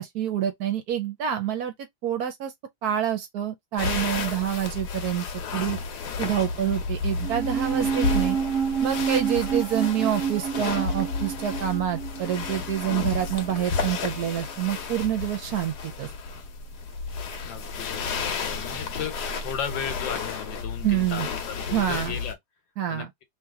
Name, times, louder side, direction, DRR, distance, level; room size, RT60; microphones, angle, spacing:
voice 1, 0.0-1.7 2.0-2.5 2.8-5.3 5.5-5.8 6.2-8.4 8.8-16.1 20.8-21.3 21.7-22.1 22.8-23.1, right 11 dB, 65° right, 1.1 m, -27 dB
sound 1, 3.8-22.3, left 4 dB, 65° left, 1.3 m, -32 dB
sound 2, 7.2-13.8 14.0-14.1, right 7 dB, 90° right, 0.6 m, -29 dB
voice 2, 7.7-8.1 17.4-22.4 22.9-23.1, left 8 dB, 80° left, 1.7 m, -36 dB
3.1 x 2.9 x 3.5 m
omnidirectional pair, 2.0 m